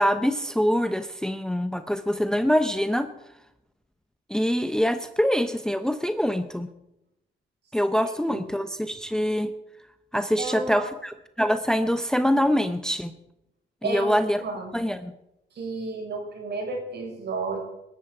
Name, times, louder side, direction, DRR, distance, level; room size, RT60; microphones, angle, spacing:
voice 1, 0.0-3.1 4.3-6.7 7.7-9.5 10.1-13.1 13.8-14.4 14.7-15.1, equal, 5° left, 10 dB, 0.8 m, -24 dB
voice 2, 10.4-10.9 13.8-14.7 15.5-17.6, right 3 dB, 60° right, 1 dB, 6.0 m, -32 dB
21.0 x 11.5 x 4.9 m, 0.86 s
cardioid pair, 90°, 20 cm